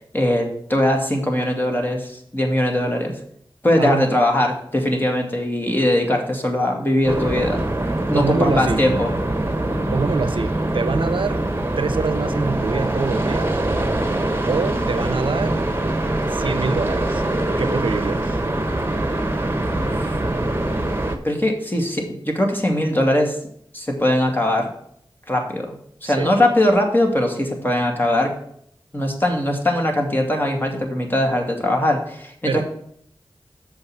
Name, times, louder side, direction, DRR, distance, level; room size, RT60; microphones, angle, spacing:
voice 1, 0.1-3.1 3.6-7.6 8.1-9.1 19.7-20.2 21.2-23.4 23.7-24.7 25.3-25.8 26.0-28.3 28.9-32.6, left 1 dB, 25° left, 2 dB, 2.3 m, -20 dB
voice 2, 3.8-4.1 8.1-8.8 9.9-11.4 11.8-13.5 14.5-15.6 16.3-17.2 17.6-18.4 26.0-26.3 32.5-32.6, right 4 dB, 80° right, 12 dB, 0.6 m, -24 dB
sound 1, 7.0-21.2, right 1 dB, 25° right, 1.2 m, -23 dB
7.0 x 5.4 x 7.2 m, 0.67 s
wide cardioid pair, 55°, 9 cm